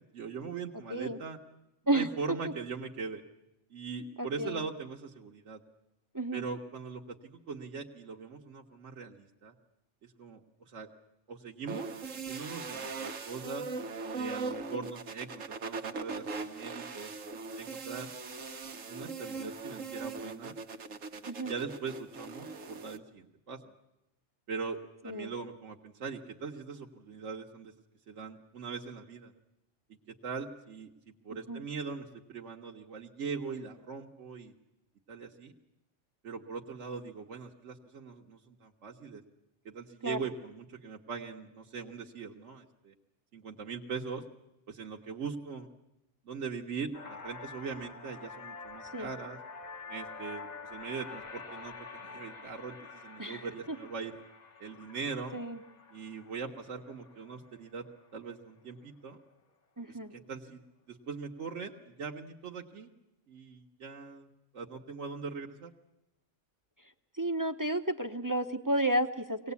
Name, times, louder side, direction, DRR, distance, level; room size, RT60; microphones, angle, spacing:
voice 1, 0.0-1.4 1.8-3.2 3.7-5.6 6.3-9.5 10.0-10.9 11.3-11.9 12.3-13.7 14.1-17.1 17.6-18.1 18.9-20.6 21.4-23.7 24.5-24.8 25.0-27.7 28.1-29.3 29.9-34.5 35.1-35.5 36.2-39.2 39.6-42.9 43.3-44.2 44.7-45.7 46.2-49.4 49.9-54.2 54.6-55.4 55.9-57.8 58.1-59.2 59.9-60.6 60.9-62.9 63.3-64.3 64.5-65.7, right 5 dB, 70° right, 0 dB, 1.6 m, -41 dB
voice 2, 4.2-4.6 6.1-6.4 14.7-14.9 21.3-21.5 25.0-25.3 31.5-31.6 40.0-40.2 48.9-49.1 53.2-53.5 55.3-55.6 59.8-60.1 67.2-69.5, right 1 dB, 20° right, 7 dB, 0.7 m, -31 dB
sound 1, 11.7-23.0, right 4 dB, 85° right, 1.6 m, -40 dB
sound 2, 46.9-58.5, left 4 dB, 35° left, 1.0 m, -47 dB
24.0 x 18.5 x 8.3 m, 0.92 s
omnidirectional pair, 1.3 m